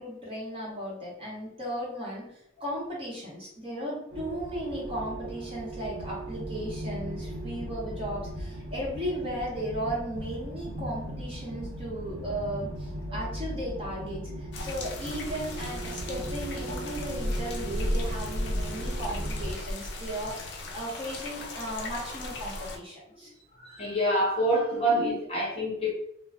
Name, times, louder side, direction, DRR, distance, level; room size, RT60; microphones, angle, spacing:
voice 1, 0.0-23.3, equal, 30° right, -6 dB, 0.9 m, -36 dB
sound 1, 4.1-19.6, right 1 dB, 85° right, 0.5 m, -38 dB
sound 2, 14.5-22.8, left 1 dB, 60° left, 0.4 m, -35 dB
voice 2, 23.5-25.9, right 1 dB, 30° left, -4 dB, 0.7 m, -26 dB
2.2 x 2.1 x 3.4 m, 0.73 s
head